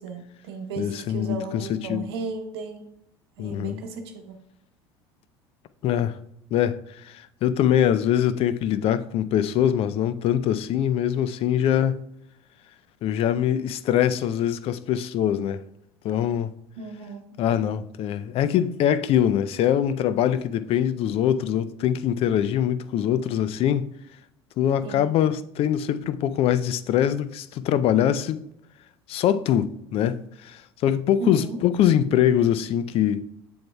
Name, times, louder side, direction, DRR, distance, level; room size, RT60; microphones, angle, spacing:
voice 1, 0.0-2.8 3.4-4.4 16.8-17.3 24.8-25.1 31.2-31.6, right 4 dB, 75° right, 0.9 m, -35 dB
voice 2, 0.8-2.1 3.4-3.8 5.8-6.2 6.5-12.0 13.0-15.6 16.0-16.5 17.4-23.9 24.6-28.4 29.1-33.3, left 10 dB, 45° left, 0.5 m, -23 dB
7.6 x 7.2 x 2.3 m
hypercardioid pair, 70°, 13 cm